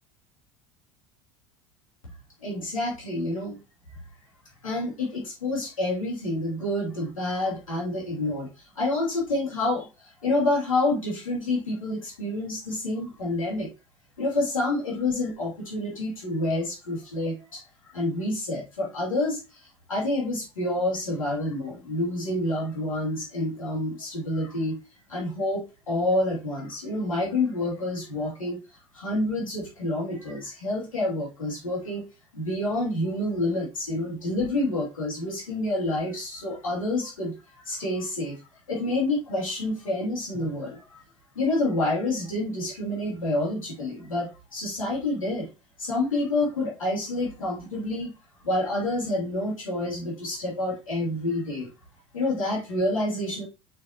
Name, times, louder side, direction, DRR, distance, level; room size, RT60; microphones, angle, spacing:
voice 1, 2.4-3.6 4.6-13.7 14.2-17.6 17.9-24.8 25.1-28.6 28.9-32.0 32.3-38.4 38.7-41.0 41.3-45.5 45.8-48.1 48.4-51.7 52.1-53.5, left 2 dB, 80° left, -4 dB, 2.6 m, -28 dB
6.4 x 5.9 x 2.8 m, 0.28 s
figure-of-eight pair, 75°, 17 cm